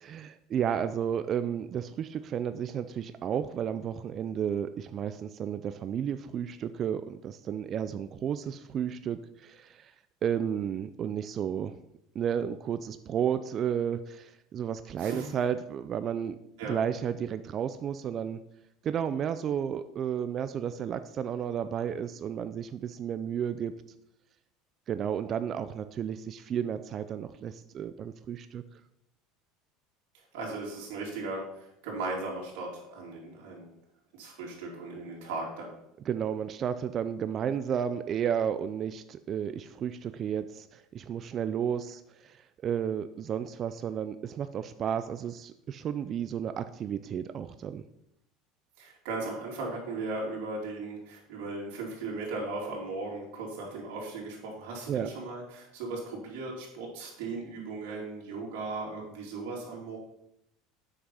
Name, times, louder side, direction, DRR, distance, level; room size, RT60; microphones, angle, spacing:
voice 1, 0.0-9.9 10.2-11.7 12.1-16.4 16.6-18.4 18.8-23.7 24.9-28.6 36.1-47.8 54.9-55.1, right 8 dB, 35° right, 11 dB, 0.4 m, -32 dB
voice 2, 30.3-33.7 34.1-35.7 48.8-60.0, right 3 dB, 75° right, -3 dB, 3.4 m, -37 dB
8.1 x 6.1 x 5.6 m, 0.78 s
supercardioid pair, 135°, 0 cm